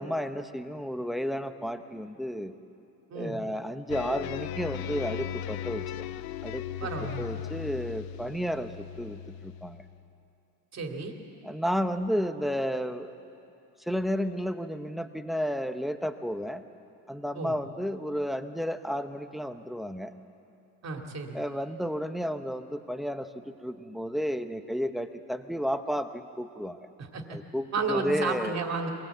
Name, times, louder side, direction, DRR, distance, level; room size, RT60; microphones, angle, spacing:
voice 1, 0.0-2.5 3.1-6.1 6.4-6.9 7.2-9.8 11.4-13.1 13.9-16.6 17.1-20.1 21.3-26.8 27.3-28.6, equal, ahead, 9 dB, 0.8 m, -32 dB
sound 1, 3.9-10.1, left 10 dB, 55° left, 0.7 m, -37 dB
voice 2, 6.8-7.4 10.7-11.1 17.3-17.5 20.8-21.4 27.0-27.4 27.7-28.9, right 4 dB, 35° right, 3 dB, 2.6 m, -32 dB
23.5 x 18.0 x 8.2 m, 2.8 s
cardioid pair, 115°, 44 cm